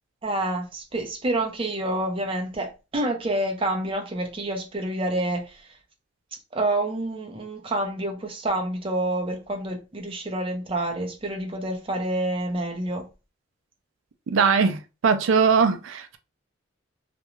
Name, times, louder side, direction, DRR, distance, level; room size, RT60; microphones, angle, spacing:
voice 1, 0.2-5.8 6.5-13.1, right 1 dB, 25° right, 0.6 m, -28 dB
voice 2, 14.3-16.2, right 5 dB, 85° right, 0.4 m, -21 dB
2.5 x 2.2 x 3.0 m
head